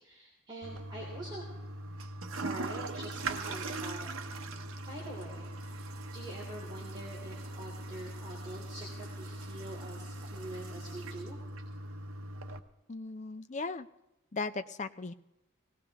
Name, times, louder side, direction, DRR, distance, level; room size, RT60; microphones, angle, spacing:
voice 1, 0.0-1.4 2.3-4.1 4.8-5.7 6.1-11.4, right 1 dB, 20° right, -4 dB, 3.1 m, -45 dB
Toilet flush, 0.6-12.6, right 2 dB, 85° right, 0.9 m, -41 dB
voice 2, 12.9-13.9 14.3-15.1, left 3 dB, 35° left, 11 dB, 0.6 m, -37 dB
19.5 x 16.5 x 3.6 m, 0.94 s
head